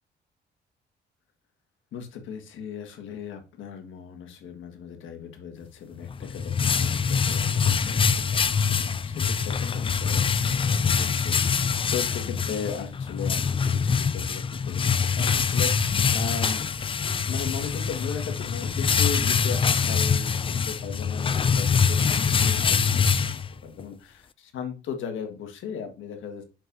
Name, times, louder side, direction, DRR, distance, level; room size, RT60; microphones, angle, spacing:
voice 1, 1.9-8.0 8.3-10.2 10.5-16.6 17.3-26.4, left 7 dB, 75° left, 6 dB, 1.5 m, -37 dB
sound 1, 6.0-23.8, left 6 dB, 25° left, 0.4 m, -24 dB
6.5 x 6.1 x 2.6 m, 0.32 s
cardioid pair, 90°, 20 cm